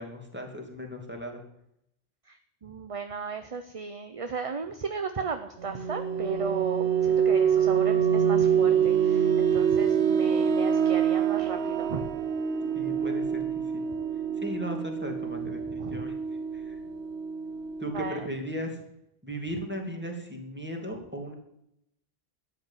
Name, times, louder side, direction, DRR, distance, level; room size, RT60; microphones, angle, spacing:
voice 1, 0.0-1.4 12.7-13.5 13.7-13.8 14.4-16.1 16.5-16.8 17.8-18.8 19.2-21.3, equal, 10° right, 2 dB, 2.7 m, -36 dB
voice 2, 2.3-12.1 15.8-16.0 17.9-18.3, right 5 dB, 35° right, 8 dB, 0.8 m, -35 dB
sound 1, 5.6-18.1, right 8 dB, 85° right, 1.0 m, -26 dB
13.0 x 8.2 x 9.2 m, 0.77 s
omnidirectional pair, 1.0 m